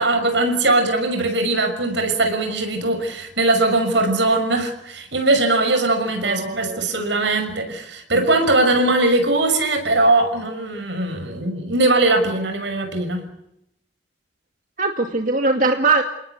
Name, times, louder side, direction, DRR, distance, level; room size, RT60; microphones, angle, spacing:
voice 1, 0.0-13.2, right 2 dB, 75° right, 6 dB, 6.3 m, -20 dB
voice 2, 6.2-6.9 14.8-16.0, right 3 dB, 45° right, 4 dB, 2.2 m, -21 dB
29.5 x 19.5 x 8.3 m, 0.81 s
head